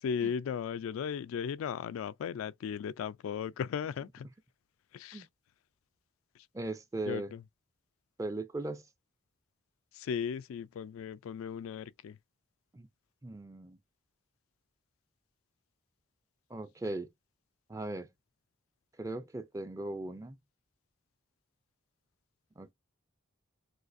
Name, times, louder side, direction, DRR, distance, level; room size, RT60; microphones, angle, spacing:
voice 1, 0.0-4.3 4.9-5.3 7.1-7.4 9.9-12.2, left 7 dB, 90° left, 0.3 m, -36 dB
voice 2, 6.5-7.3 8.2-8.8 12.7-12.9 13.2-13.8 16.5-17.1 17.7-18.1 19.0-20.4 22.6-22.7, right 2 dB, 15° right, 0.3 m, -38 dB
6.4 x 2.4 x 2.6 m
head